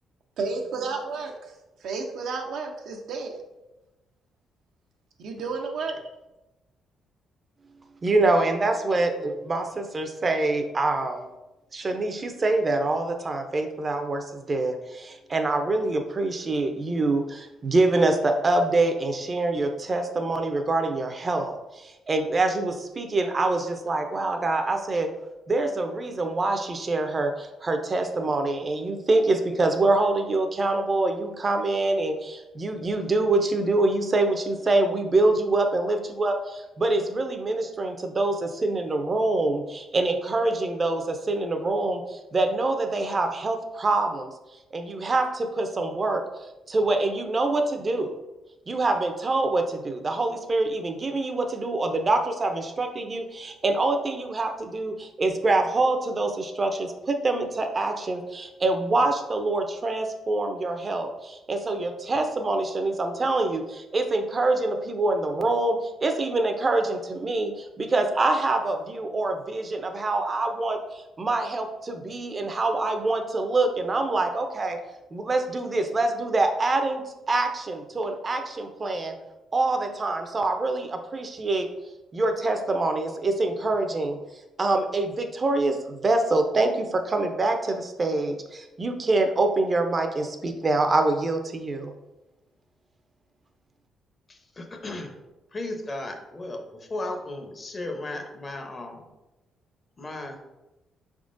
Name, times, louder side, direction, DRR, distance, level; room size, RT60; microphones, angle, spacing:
voice 1, 0.4-1.3 1.8-3.4 5.2-6.0, right 4 dB, 75° right, 3 dB, 0.6 m, -31 dB
voice 2, 8.0-11.3 11.7-25.1 25.5-44.3 44.7-46.2 46.7-48.1 48.7-74.8 75.1-79.1 79.5-81.7 82.1-84.2 84.6-91.9, right 2 dB, 35° right, 6 dB, 0.5 m, -25 dB
voice 3, 94.3-95.1 95.5-99.1 100.0-100.4, left 2 dB, 30° left, 4 dB, 0.7 m, -35 dB
4.7 x 3.6 x 2.5 m, 1.0 s
cardioid pair, 90°, 0 cm